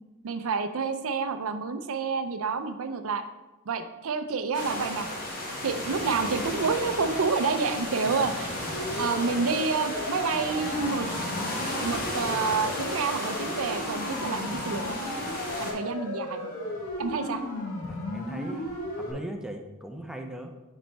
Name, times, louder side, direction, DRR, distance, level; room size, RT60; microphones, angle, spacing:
voice 1, 0.2-3.2 3.7-5.1 5.6-8.6 9.0-11.1 11.8-15.0 15.6-16.5 17.0-17.4, right 4 dB, 65° right, 9 dB, 0.5 m, -29 dB
sound 1, 4.5-15.7, left 1 dB, 40° left, 1.5 m, -34 dB
Siren, 8.7-19.1, left 1 dB, 75° left, 1.6 m, -35 dB
voice 2, 17.9-18.7 19.0-20.5, right 1 dB, 5° right, 4 dB, 0.5 m, -39 dB
7.9 x 4.2 x 3.4 m, 1.1 s
head